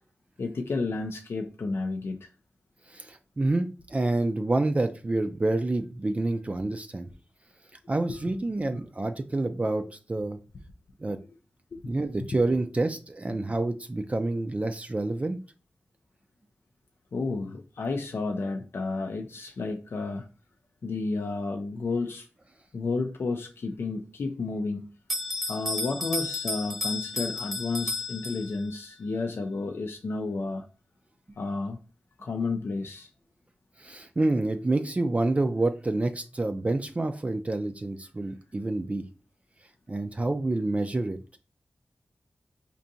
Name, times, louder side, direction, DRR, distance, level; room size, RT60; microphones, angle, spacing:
voice 1, 0.4-2.3 8.1-8.2 11.7-11.9 17.1-20.3 20.8-22.3 22.7-24.8 25.5-30.6 31.4-31.8 32.2-33.1, left 3 dB, 75° left, 4 dB, 0.4 m, -31 dB
voice 2, 2.9-7.1 7.9-10.4 11.0-11.2 11.9-15.4 33.8-39.0 39.9-41.2, right 2 dB, 35° right, 7 dB, 0.4 m, -28 dB
Bell, 25.1-28.8, left 1 dB, ahead, 0.8 m, -33 dB
4.4 x 2.6 x 2.6 m, 0.35 s
cardioid pair, 45°, 4 cm